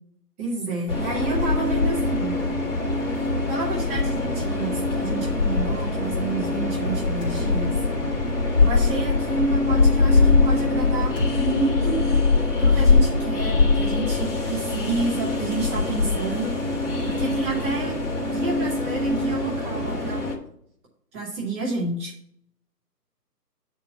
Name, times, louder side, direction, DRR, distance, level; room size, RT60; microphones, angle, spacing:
voice 1, 0.4-2.4 3.5-7.8 8.6-12.0 12.6-16.5 17.0-17.9 18.3-20.2 21.1-22.1, right 3 dB, 10° right, -7 dB, 1.1 m, -29 dB
Train, 0.9-20.4, left 3 dB, 50° left, 2.6 m, -23 dB
sound 1, 7.2-8.1 8.4-8.5 11.1-12.4, equal, 10° left, 1.2 m, -36 dB
8.4 x 4.4 x 5.6 m, 0.67 s
figure-of-eight pair, 155°, 49 cm